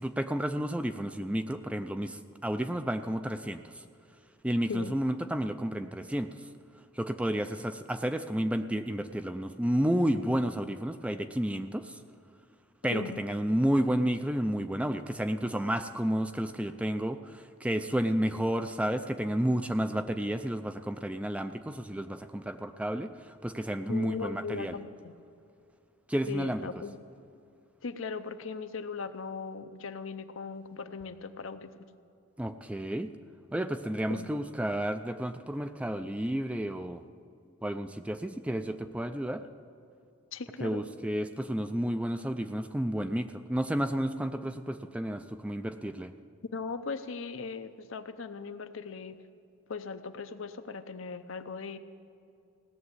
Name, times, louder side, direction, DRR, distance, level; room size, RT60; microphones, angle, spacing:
voice 1, 0.0-3.8 4.4-6.5 6.9-12.0 12.8-24.8 26.1-26.7 32.4-33.1 33.5-37.0 37.6-39.5 40.6-46.1, right 1 dB, 5° right, 9 dB, 0.4 m, -31 dB
voice 2, 12.9-13.2 23.9-25.1 26.3-26.9 27.8-31.9 34.1-34.3 40.3-40.8 46.5-49.2 49.7-51.8, left 4 dB, 75° left, 9 dB, 0.7 m, -38 dB
17.0 x 7.1 x 9.6 m, 2.5 s
head